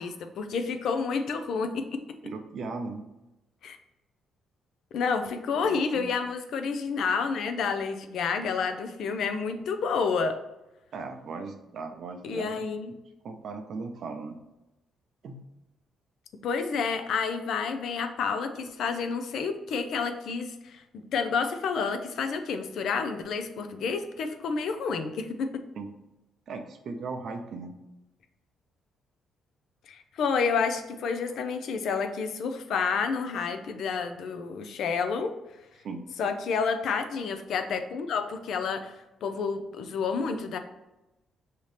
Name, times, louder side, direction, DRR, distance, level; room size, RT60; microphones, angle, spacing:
voice 1, 0.0-2.0 3.6-3.8 4.9-10.4 12.2-12.9 16.4-25.6 29.9-35.3 36.2-39.0 39.2-40.6, left 5 dB, 70° left, 7 dB, 0.5 m, -29 dB
voice 2, 2.2-3.0 5.6-6.1 10.9-12.7 13.2-14.4 15.2-15.4 25.8-25.9 26.5-27.8 35.8-36.1, right 4 dB, 65° right, 6 dB, 0.6 m, -38 dB
5.0 x 2.7 x 3.2 m, 0.97 s
cardioid pair, 90°, 0 cm